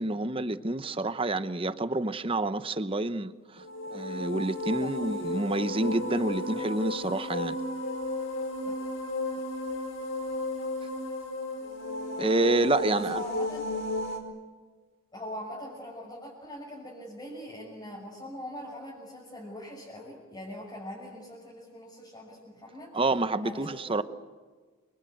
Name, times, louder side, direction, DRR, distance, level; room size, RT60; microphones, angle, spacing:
voice 1, 0.0-3.6 3.9-7.6 12.2-13.2 22.9-24.0, right 2 dB, 25° right, 0.9 m, -28 dB
sound 1, 3.6-14.2, left 1 dB, 60° left, 4.5 m, -34 dB
voice 2, 13.0-13.6 15.1-23.0 23.4-24.0, equal, 20° left, 6.3 m, -42 dB
30.0 x 23.5 x 8.0 m
head